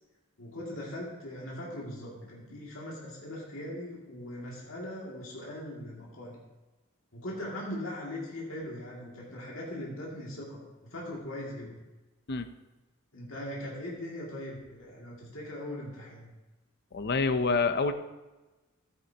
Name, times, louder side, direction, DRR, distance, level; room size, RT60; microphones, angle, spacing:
voice 1, 0.4-6.4 7.1-10.6 10.9-11.7 13.1-16.3, left 1 dB, 70° left, -4 dB, 2.4 m, -40 dB
voice 2, 16.9-17.9, left 4 dB, 55° left, 10 dB, 0.6 m, -27 dB
12.5 x 9.6 x 2.9 m, 1.1 s
head